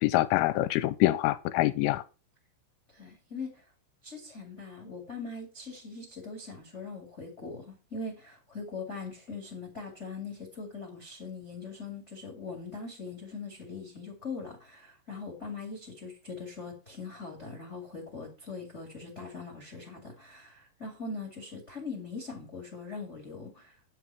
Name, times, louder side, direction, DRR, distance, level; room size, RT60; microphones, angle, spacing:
voice 1, 0.0-2.0, left 17 dB, 80° left, 2.9 m, -25 dB
voice 2, 2.9-3.6 4.0-23.7, left 4 dB, 25° left, 1.6 m, -41 dB
9.9 x 5.8 x 5.8 m
omnidirectional pair, 5.8 m